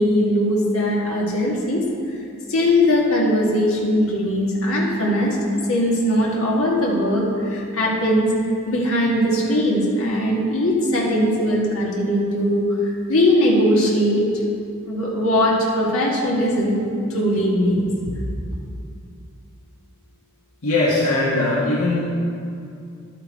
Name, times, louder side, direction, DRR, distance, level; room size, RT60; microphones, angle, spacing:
voice 1, 0.0-1.8 2.5-5.4 5.7-8.3 8.7-14.2 14.8-16.8 17.1-17.9, equal, 65° left, -3 dB, 1.8 m, -20 dB
voice 2, 20.6-22.3, left 2 dB, 80° left, -6 dB, 1.4 m, -20 dB
11.0 x 6.8 x 4.7 m, 2.4 s
head